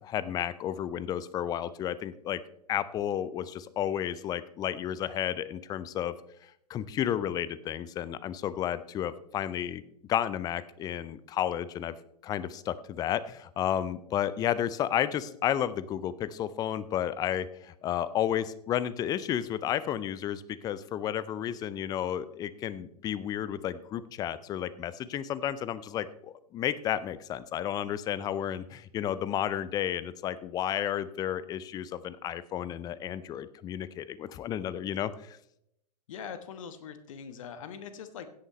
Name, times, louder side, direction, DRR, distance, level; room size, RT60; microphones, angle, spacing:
voice 1, 0.0-2.4 2.7-6.1 6.7-9.8 10.1-11.9 12.2-35.4, left 10 dB, 20° left, 17 dB, 0.5 m, -32 dB
voice 2, 36.1-38.3, left 7 dB, 55° left, 10 dB, 1.3 m, -42 dB
16.5 x 8.8 x 3.2 m, 0.76 s
figure-of-eight pair, 105°, 20 cm